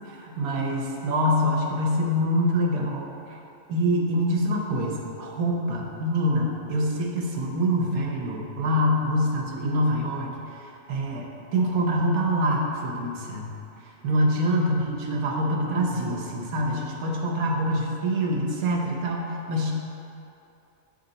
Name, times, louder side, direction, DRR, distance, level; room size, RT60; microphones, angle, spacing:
voice 1, 0.0-3.4 3.7-13.5 14.0-19.7, equal, 85° right, 0 dB, 1.3 m, -25 dB
8.7 x 3.3 x 4.0 m, 2.7 s
omnidirectional pair, 1.5 m